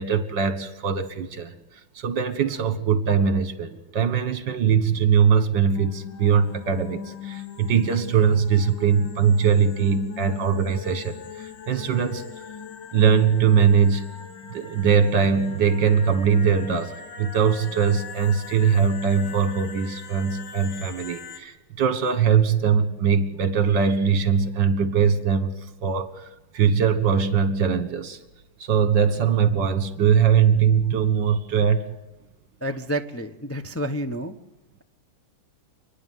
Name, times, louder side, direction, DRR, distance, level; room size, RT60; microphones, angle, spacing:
voice 1, 0.0-1.5 2.0-12.2 12.9-14.1 14.5-25.5 25.8-26.3 26.5-28.2 28.6-31.8, right 7 dB, 65° right, 12 dB, 2.1 m, -21 dB
sound 1, 5.7-21.4, left 6 dB, 70° left, 2.1 m, -40 dB
voice 2, 32.6-34.4, equal, 15° left, 5 dB, 0.5 m, -29 dB
29.0 x 10.5 x 9.5 m, 1.0 s
omnidirectional pair, 2.2 m